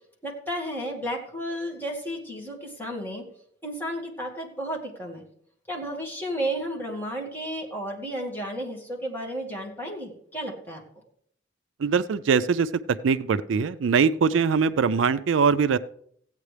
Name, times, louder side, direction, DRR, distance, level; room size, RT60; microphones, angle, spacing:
voice 1, 0.2-3.2 3.6-5.2 5.7-10.8, equal, 10° left, -1 dB, 2.1 m, -33 dB
voice 2, 11.8-12.7 13.0-15.8, right 5 dB, 85° right, 14 dB, 0.4 m, -22 dB
15.5 x 8.9 x 3.3 m, 0.65 s
head